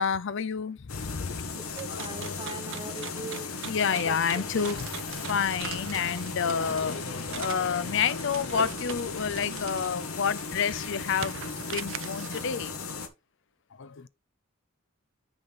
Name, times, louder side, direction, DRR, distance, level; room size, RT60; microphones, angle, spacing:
voice 1, 0.0-1.5 1.9-2.6 3.7-4.9 5.3-11.4 11.7-12.7 13.8-14.1, left 6 dB, 60° left, 0.5 m, -29 dB
sound 1, 0.9-13.1, left 4 dB, 85° left, 1.2 m, -37 dB
voice 2, 1.7-3.5 3.8-4.7 6.6-6.9, right 2 dB, 25° right, 1.2 m, -41 dB
sound 2, 1.8-7.6 8.4-9.3 9.8-9.9 10.3-12.6, right 9 dB, 60° right, 0.5 m, -42 dB
sound 3, 4.6-9.9, right 6 dB, 85° right, 1.2 m, -46 dB
9.7 x 4.2 x 3.7 m
head